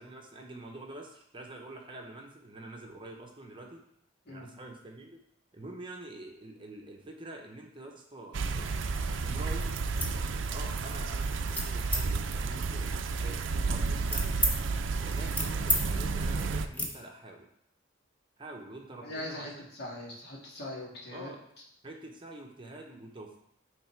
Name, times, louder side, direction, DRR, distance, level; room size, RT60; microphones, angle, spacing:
voice 1, 0.0-3.8 4.3-5.2 5.5-8.9 9.2-9.7 10.4-14.4 15.0-17.5 18.4-19.6 21.1-21.4 21.8-23.4, right 2 dB, 25° right, 1 dB, 0.8 m, -46 dB
sound 1, 8.3-16.7, right 4 dB, 80° right, 0.5 m, -31 dB
sound 2, 10.0-10.2 10.6-11.0 11.5-12.0 12.7-14.5 15.0-15.8 16.1-16.3 16.7-16.9, equal, 10° left, 0.9 m, -33 dB
voice 2, 19.0-21.3, left 1 dB, 60° left, -4 dB, 2.0 m, -41 dB
9.1 x 3.3 x 4.4 m, 0.74 s
head